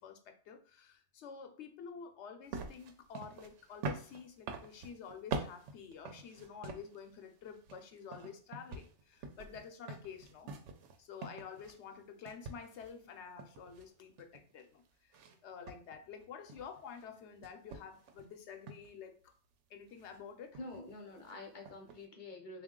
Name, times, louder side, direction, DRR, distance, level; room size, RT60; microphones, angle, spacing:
voice 1, 0.0-10.5 11.0-19.3 19.7-20.6, left 6 dB, 75° left, 0.9 m, -50 dB
sound 1, 2.5-7.1 7.5-12.0 12.3-14.6 15.1-15.4 15.7-17.1 17.4-18.3 18.7-18.9 19.9-20.2 20.5-21.0 21.2-21.3 21.6-22.0, right 4 dB, 90° right, 0.9 m, -45 dB
voice 2, 20.6-22.6, left 2 dB, 50° left, 0.7 m, -47 dB
3.5 x 2.5 x 3.6 m
omnidirectional pair, 1.2 m